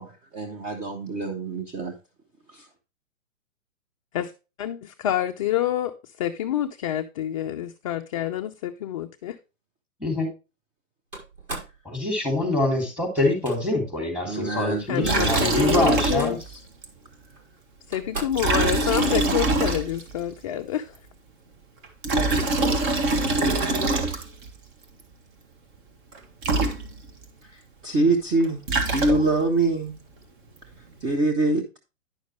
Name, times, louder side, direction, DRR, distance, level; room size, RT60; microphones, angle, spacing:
voice 1, 0.0-1.9 2.5-2.7 14.2-16.1 18.6-19.4 27.4-28.6 28.9-30.0 31.0-31.8, right 2 dB, 20° right, 1.0 m, -26 dB
voice 2, 4.6-9.4 14.9-16.4 17.9-21.0, left 12 dB, 25° left, 0.4 m, -27 dB
Slam, 11.1-11.8 13.2-13.6 14.7-14.8 15.0-15.6 15.9-16.6 17.4-17.5 17.9-18.5, right 2 dB, 90° right, 5.8 m, -36 dB
voice 3, 11.8-16.4, left 1 dB, 5° right, 3.2 m, -25 dB
Liquid, 15.0-16.5 16.8-16.9 18.3-20.2 21.8-24.5 26.1-26.2 26.4-27.2 28.4-29.5, right 2 dB, 40° right, 1.8 m, -24 dB
10.5 x 6.3 x 3.2 m
hypercardioid pair, 130°, 41 cm